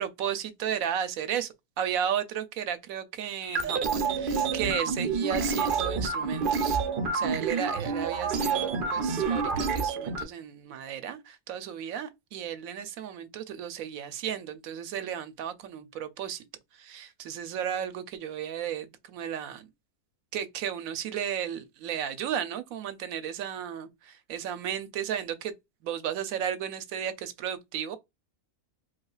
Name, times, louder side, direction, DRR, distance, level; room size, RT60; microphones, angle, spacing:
voice 1, 0.0-6.8 7.1-16.4 16.7-19.7 20.3-25.5 25.8-28.0, right 9 dB, 80° right, 1.1 m, -34 dB
sound 1, 3.4-10.2, right 5 dB, 50° right, 0.6 m, -28 dB
4.9 x 2.3 x 2.3 m
omnidirectional pair, 1.5 m